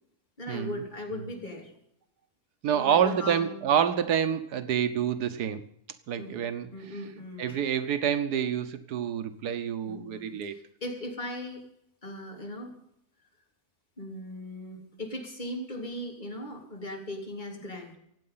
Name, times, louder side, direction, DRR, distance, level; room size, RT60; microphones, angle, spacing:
voice 1, 0.4-1.7 2.7-3.6 6.2-6.4 6.7-7.6 9.9-11.7 12.0-12.8 14.0-18.0, left 1 dB, 30° left, 0 dB, 3.4 m, -38 dB
voice 2, 2.6-5.6 6.1-6.7 7.4-10.5, right 8 dB, 90° right, 10 dB, 1.5 m, -27 dB
25.5 x 8.6 x 5.6 m, 0.73 s
omnidirectional pair, 1.6 m